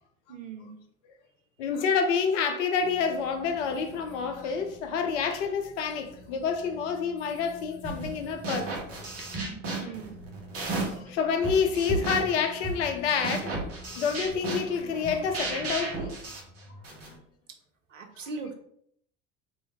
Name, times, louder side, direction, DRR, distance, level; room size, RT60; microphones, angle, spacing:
voice 1, 0.3-0.8 9.8-10.2 17.9-18.5, right 4 dB, 90° right, 0.5 m, -39 dB
voice 2, 1.6-8.8 9.7-9.9 10.7-13.6 14.0-16.2, left 6 dB, 70° left, 0.7 m, -28 dB
sound 1, 2.8-15.7, left 4 dB, 20° left, 1.3 m, -50 dB
sound 2, 7.8-8.2 8.4-11.1 11.4-17.1, right 3 dB, 40° right, 1.2 m, -34 dB
3.1 x 2.7 x 2.8 m
figure-of-eight pair, 60°, 37 cm